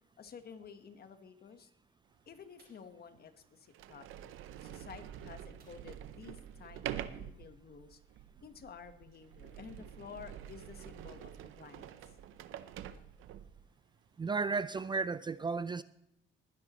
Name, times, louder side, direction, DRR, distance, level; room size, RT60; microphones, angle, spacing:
voice 1, 0.2-1.7 2.3-8.0 8.4-12.2, left 6 dB, 50° left, 1.3 m, -52 dB
Sliding door, 2.3-2.4 3.2-3.3 3.7-13.6, right 11 dB, 90° right, 0.7 m, -47 dB
sound 1, 2.6-3.0 5.6-6.2 6.5-6.6 7.0-7.2, right 4 dB, 55° right, 5.3 m, -68 dB
voice 2, 14.2-15.8, right 4 dB, 25° right, 0.3 m, -34 dB
20.5 x 9.9 x 3.1 m
cardioid pair, 90°, 20 cm